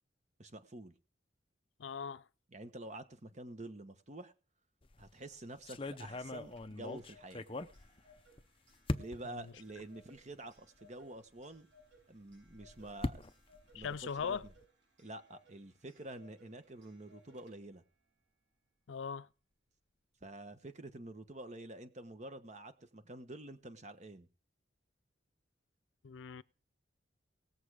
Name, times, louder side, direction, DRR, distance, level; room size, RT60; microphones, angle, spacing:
voice 1, 0.4-0.9 2.5-4.3 5.0-7.5 8.9-11.7 12.1-13.3 13.7-14.5 15.0-17.8 20.2-24.3, right 1 dB, 40° right, 1.3 m, -48 dB
voice 2, 1.8-2.2 9.2-9.4 13.7-14.4 18.9-19.3 26.0-26.4, left 6 dB, 80° left, 0.5 m, -40 dB
sound 1, 4.8-5.1 5.7-8.4 8.9-9.4 10.2-10.3 10.6-10.7 12.3-14.6, left 2 dB, 30° left, 0.7 m, -41 dB
Clock, 6.5-17.9, left 1 dB, 80° right, 6.7 m, -66 dB
19.0 x 7.3 x 4.9 m
head